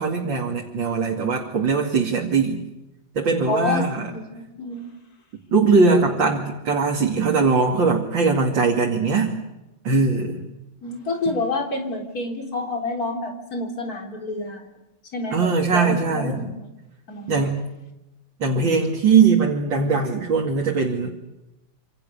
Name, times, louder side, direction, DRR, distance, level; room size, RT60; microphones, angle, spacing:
voice 1, 0.0-2.6 3.1-4.1 5.5-9.3 9.8-10.4 15.3-16.4 17.3-17.6 18.4-21.1, right 4 dB, 85° right, 0 dB, 3.3 m, -20 dB
voice 2, 3.5-4.9 10.8-14.7 15.1-16.7 17.1-17.4, left 3 dB, 50° left, 4 dB, 4.3 m, -28 dB
27.5 x 27.0 x 6.9 m, 0.97 s
omnidirectional pair, 2.0 m